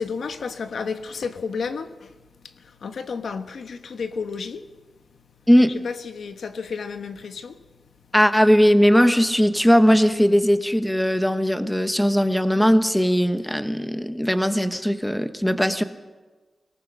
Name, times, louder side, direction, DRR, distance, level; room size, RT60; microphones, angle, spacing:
voice 1, 0.0-2.2 2.4-4.7 5.7-7.7, left 5 dB, 90° left, 1.3 m, -32 dB
voice 2, 8.1-15.8, equal, 5° left, 1.1 m, -19 dB
24.0 x 18.5 x 6.4 m
wide cardioid pair, 115°, 0 cm